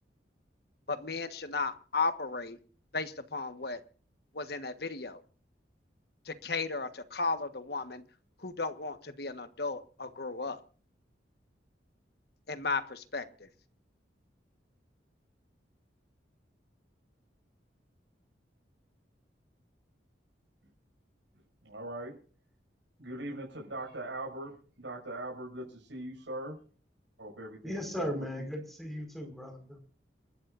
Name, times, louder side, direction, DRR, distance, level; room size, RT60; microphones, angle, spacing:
voice 1, 0.9-2.6 2.9-3.8 4.3-5.2 6.2-8.0 8.4-10.6 12.5-13.5, left 3 dB, 60° left, 10 dB, 1.4 m, -35 dB
voice 2, 21.6-22.2 23.0-26.6 27.2-28.5, right 1 dB, 85° right, -1 dB, 6.3 m, -41 dB
voice 3, 27.6-29.8, equal, ahead, 4 dB, 5.1 m, -37 dB
29.0 x 13.0 x 2.6 m, 0.42 s
head